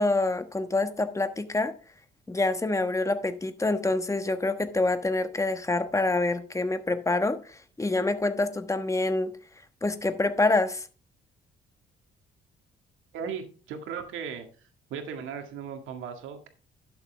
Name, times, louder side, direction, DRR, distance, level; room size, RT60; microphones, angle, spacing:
voice 1, 0.0-1.7 2.3-9.3 9.8-10.9, left 2 dB, 15° left, 1.2 m, -26 dB
voice 2, 13.1-14.5 14.9-16.5, right 7 dB, 90° right, 1.9 m, -37 dB
11.5 x 7.1 x 3.4 m
cardioid pair, 90°, 20 cm